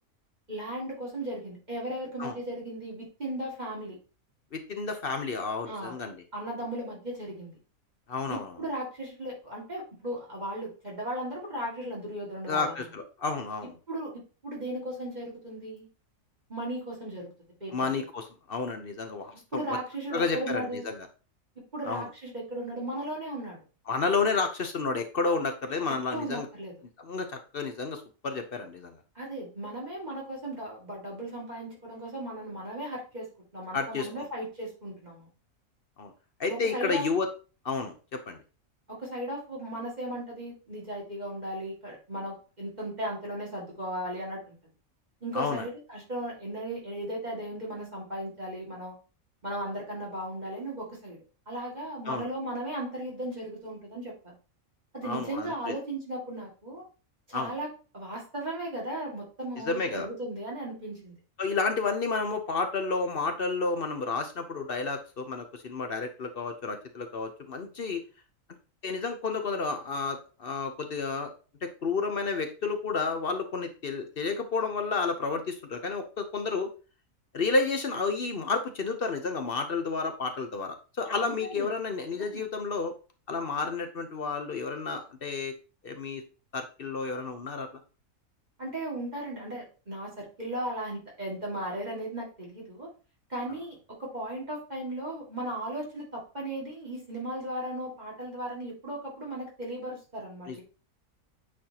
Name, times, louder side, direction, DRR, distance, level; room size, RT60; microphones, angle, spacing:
voice 1, 0.5-4.0 5.7-6.0 6.3-7.5 8.2-12.8 13.6-15.9 16.5-17.3 17.6-17.9 19.5-20.9 21.6-23.6 25.9-26.7 29.2-33.3 33.5-35.3 36.5-37.1 38.9-44.5 45.2-48.9 49.4-51.2 51.5-54.3 54.9-56.8 57.3-57.7 57.9-61.1 81.2-81.7 82.2-82.4 88.6-92.9 93.3-100.6, right 1 dB, 30° right, -4 dB, 2.2 m, -36 dB
voice 2, 4.5-6.2 8.1-8.5 12.5-13.7 17.7-19.8 20.1-21.0 21.9-22.1 23.9-26.5 27.0-27.3 27.5-28.9 33.7-34.1 36.0-36.1 36.4-37.3 37.6-38.4 45.3-45.7 52.1-52.3 55.0-55.7 57.3-57.5 59.6-60.1 61.4-68.0 68.8-71.3 71.6-76.7 77.3-82.9 83.3-85.5 85.8-86.2 86.5-87.7 100.5-100.6, left 4 dB, 50° left, 6 dB, 0.9 m, -31 dB
8.6 x 4.3 x 2.8 m, 0.34 s
omnidirectional pair, 1.5 m